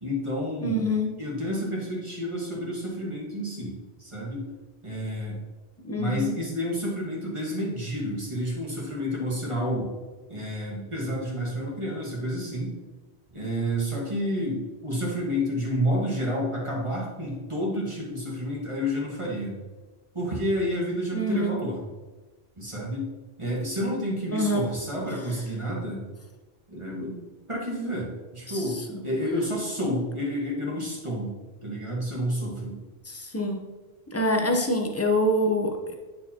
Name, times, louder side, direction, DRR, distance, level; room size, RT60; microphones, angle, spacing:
voice 1, 0.0-0.8 1.2-4.4 4.8-5.4 5.9-9.9 10.3-12.7 13.3-19.6 20.1-21.8 22.6-23.1 23.4-26.0 26.7-27.2 27.5-31.3 31.6-32.8, equal, 30° right, -4 dB, 1.6 m, -30 dB
voice 2, 0.6-1.1 5.8-6.3 21.1-21.6 24.3-24.7 28.5-29.0 33.1-33.6 34.1-35.9, equal, 15° left, 3 dB, 0.6 m, -26 dB
9.5 x 4.4 x 2.9 m, 1.2 s
omnidirectional pair, 1.1 m